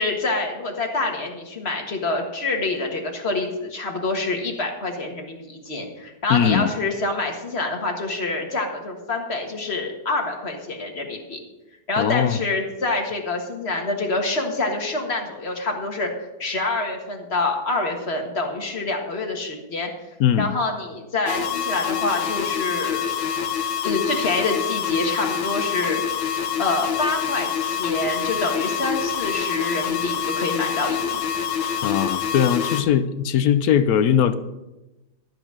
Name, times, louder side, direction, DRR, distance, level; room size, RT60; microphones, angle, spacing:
voice 1, 0.0-11.4 11.9-19.9 20.4-23.1 23.8-26.0 26.6-31.2, left 3 dB, 35° left, 2 dB, 1.7 m, -26 dB
voice 2, 6.3-6.7 12.0-12.4 20.2-20.5 31.8-34.3, left 9 dB, 65° left, 12 dB, 0.9 m, -20 dB
sound 1, 21.3-32.8, left 8 dB, 85° left, 1.8 m, -26 dB
13.5 x 6.0 x 7.3 m, 1.0 s
omnidirectional pair, 2.1 m